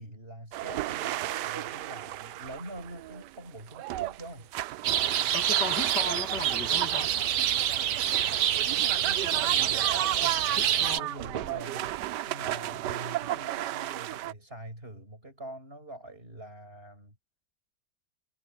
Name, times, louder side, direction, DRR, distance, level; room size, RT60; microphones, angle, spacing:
voice 1, 0.0-4.5 8.8-12.0 12.3-17.2, right 1 dB, 35° right, 6.9 m, -44 dB
sound 1, 0.5-14.3, right 15 dB, 85° right, 1.2 m, -35 dB
sound 2, 4.8-11.0, right 10 dB, 70° right, 1.3 m, -27 dB
voice 2, 5.3-7.1 9.2-9.4 10.2-11.1, left 4 dB, 85° left, 2.8 m, -37 dB
omnidirectional pair, 1.8 m